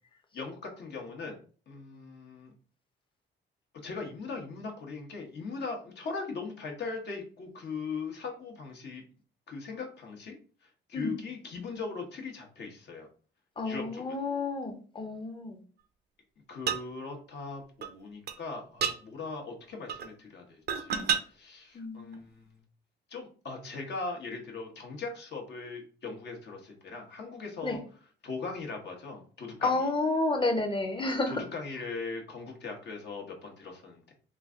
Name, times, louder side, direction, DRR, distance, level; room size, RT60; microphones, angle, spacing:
voice 1, 0.3-1.4 1.7-2.5 3.8-9.0 9.5-10.4 10.6-13.1 13.6-14.3 16.5-22.6 23.1-27.8 28.2-29.9 31.0-34.1, left 4 dB, 60° left, 2 dB, 1.1 m, -40 dB
voice 2, 13.6-15.6 21.7-22.2 27.6-27.8 29.6-31.3, left 2 dB, 25° left, 5 dB, 0.8 m, -30 dB
sound 1, 16.7-16.8 17.8-17.9 18.3-18.4 18.8-19.0 19.9-20.1 20.7-21.2 22.1-22.2, right 7 dB, 55° right, 0.5 m, -29 dB
3.1 x 2.4 x 3.6 m, 0.40 s
cardioid pair, 90°, 20 cm